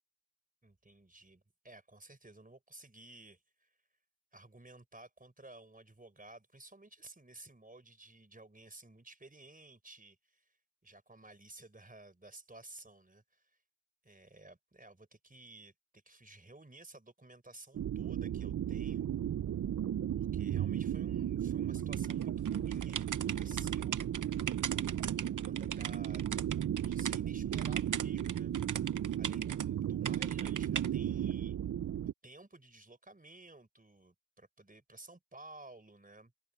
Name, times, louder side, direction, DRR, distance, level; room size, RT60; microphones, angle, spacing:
voice 1, 0.6-3.7 4.3-10.6 10.8-13.6 14.0-19.1 20.2-24.0 25.4-26.4 26.8-28.6 29.2-31.6 32.2-36.3, right 2 dB, 30° right, 4.6 m, -55 dB
sound 1, 17.7-32.1, right 10 dB, 65° right, 0.5 m, -35 dB
sound 2, 21.9-27.2 27.5-29.7 30.0-30.9, right 8 dB, 90° right, 0.8 m, -40 dB
open air
cardioid pair, 50°, 30 cm